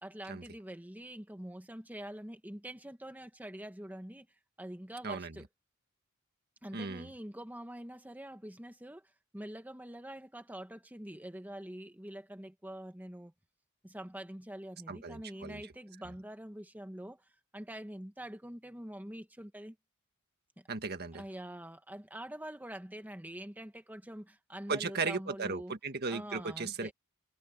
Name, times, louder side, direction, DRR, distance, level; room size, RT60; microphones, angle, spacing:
voice 1, 0.0-4.3 4.6-5.4 6.6-13.3 13.8-17.3 17.5-19.7 20.6-20.7 21.1-25.8 26.1-26.9, right 1 dB, 10° right, 1.3 m, -45 dB
voice 2, 6.7-7.1 14.9-15.6 20.7-21.2 24.7-26.9, right 4 dB, 50° right, 1.7 m, -36 dB
head